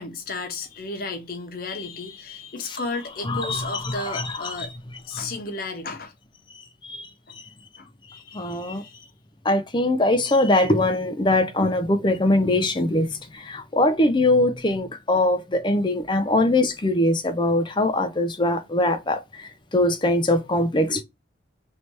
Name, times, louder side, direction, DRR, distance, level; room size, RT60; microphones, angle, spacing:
voice 1, 0.0-4.7 5.1-6.1 7.3-7.4 7.8-9.0, left 3 dB, 50° left, 0.9 m, -34 dB
voice 2, 3.3-3.6 4.1-4.2 6.9-7.0 8.3-8.8 9.5-13.1 13.5-19.2 19.7-21.0, left 1 dB, 25° left, 0.5 m, -21 dB
3.2 x 2.9 x 4.6 m
head